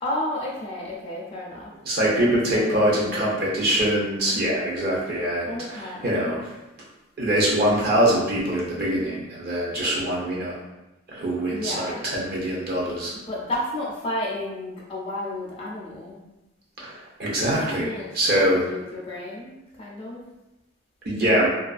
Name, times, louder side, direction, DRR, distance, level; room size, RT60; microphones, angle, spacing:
voice 1, 0.0-1.7 2.0-3.3 5.5-6.3 11.5-12.1 13.3-16.2 17.6-20.2, left 1 dB, 25° left, -5 dB, 0.3 m, -32 dB
voice 2, 1.9-6.4 7.2-10.5 11.1-13.1 16.8-17.9 18.1-18.7 21.1-21.5, right 1 dB, 50° right, -5 dB, 0.5 m, -23 dB
2.4 x 2.3 x 2.4 m, 0.97 s
head